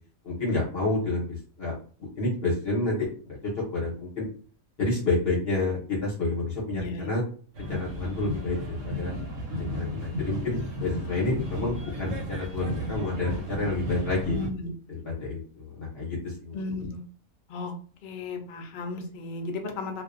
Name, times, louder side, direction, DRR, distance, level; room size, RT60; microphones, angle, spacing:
voice 1, 0.2-1.8 2.2-4.2 4.8-7.2 7.6-8.6 8.8-9.1 9.6-14.4 14.9-16.5, left 2 dB, 50° left, -5 dB, 0.9 m, -29 dB
voice 2, 6.7-7.1 14.3-14.7 16.5-17.0 17.5-17.7 18.0-20.0, left 3 dB, 80° left, 4 dB, 0.4 m, -34 dB
sound 1, 7.6-14.5, equal, 70° right, 0.9 m, -34 dB
2.4 x 2.1 x 2.4 m, 0.42 s
omnidirectional pair, 1.4 m